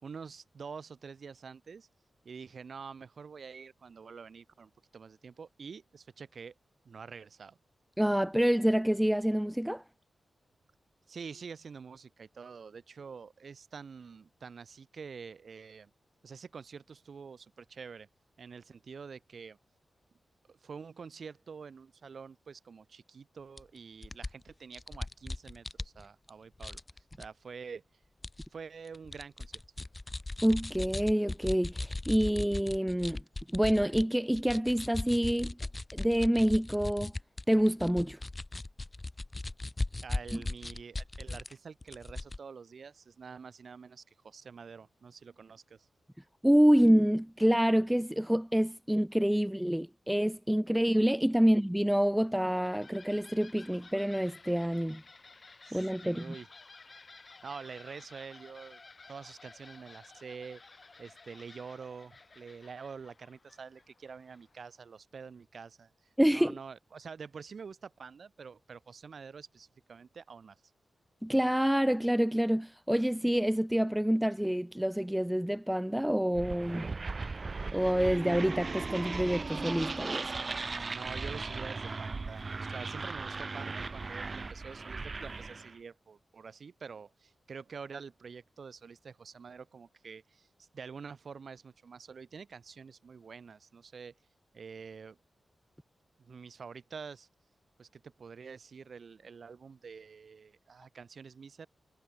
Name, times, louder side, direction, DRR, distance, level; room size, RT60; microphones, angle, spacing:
voice 1, 0.0-1.9 2.2-6.5 6.9-7.6 11.1-15.9 16.2-18.1 18.4-19.6 20.5-26.8 27.2-27.8 28.5-29.6 40.0-45.9 51.4-51.5 55.6-56.5 57.4-58.8 59.1-65.9 66.3-70.6 80.9-94.1 94.5-95.2 96.2-97.3 97.8-101.7, right 5 dB, 70° right, 5.4 m, -47 dB
voice 2, 8.0-9.8 30.4-33.2 33.5-35.6 35.9-37.1 37.5-38.2 40.3-40.4 46.4-55.0 55.7-56.3 66.2-66.6 71.2-76.9 77.7-80.3, equal, 5° right, 0.5 m, -27 dB
sound 1, 23.6-23.7 24.0-26.3 26.6-27.3 28.2-28.5 28.8-34.0 34.3-41.5 41.8-42.4, left 2 dB, 30° left, 1.2 m, -38 dB
sound 2, 52.2-64.7, left 3 dB, 45° left, 6.5 m, -55 dB
sound 3, 76.3-85.7, right 3 dB, 45° right, 0.8 m, -37 dB
cardioid pair, 60°, 0 cm